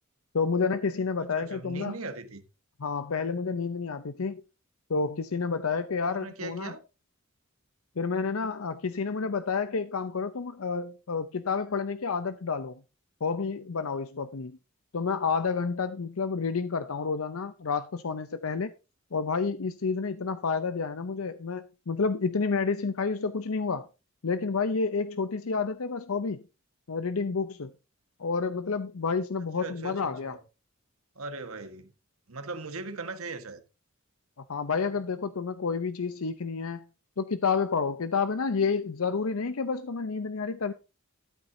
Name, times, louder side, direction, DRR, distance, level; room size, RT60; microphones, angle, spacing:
voice 1, 0.3-1.9 2.8-4.4 4.9-6.7 8.0-12.8 13.2-14.6 14.9-18.7 19.1-23.9 24.2-26.4 26.9-27.7 28.2-30.4 34.4-36.8 37.2-40.7, left 5 dB, 80° left, 0.7 m, -29 dB
voice 2, 1.4-2.4 6.0-6.8 29.4-30.4 31.1-31.9 32.3-33.6, right 3 dB, 80° right, 1.5 m, -39 dB
13.0 x 8.8 x 2.8 m
head